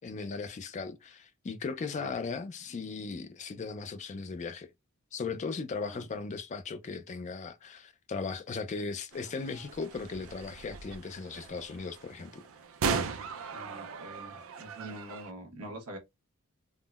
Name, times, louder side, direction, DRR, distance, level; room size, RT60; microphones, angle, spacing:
voice 1, 0.0-4.7 5.1-12.4, left 4 dB, 35° left, 0.3 m, -37 dB
sound 1, 9.1-15.3, right 5 dB, 65° right, 0.4 m, -38 dB
voice 2, 13.5-16.0, right 1 dB, 85° right, 0.9 m, -45 dB
3.6 x 2.0 x 2.2 m
head